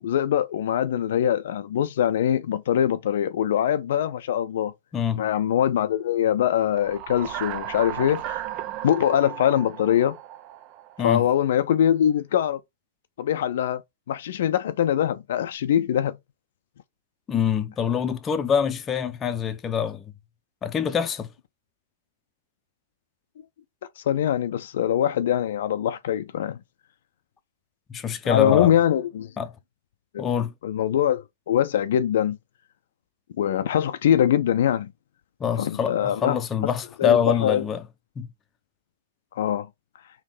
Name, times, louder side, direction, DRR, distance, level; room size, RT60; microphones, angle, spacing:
voice 1, 0.0-4.7 5.2-8.4 8.8-10.2 11.0-12.6 13.2-13.8 14.1-16.2 24.1-26.6 28.3-29.3 30.1-30.3 30.6-32.4 33.4-34.9 35.6-36.4 37.0-37.6 39.4-39.7, left 10 dB, 65° left, 0.4 m, -23 dB
voice 2, 4.9-5.2 11.0-11.2 17.3-20.0 20.6-21.3 27.9-28.7 29.4-29.5 30.2-30.5 35.4-37.8 38.2-38.3, left 8 dB, 20° left, 0.7 m, -25 dB
sound 1, 6.6-11.2, right 13 dB, 40° right, 0.5 m, -35 dB
3.6 x 3.0 x 4.9 m
hypercardioid pair, 120°, 0 cm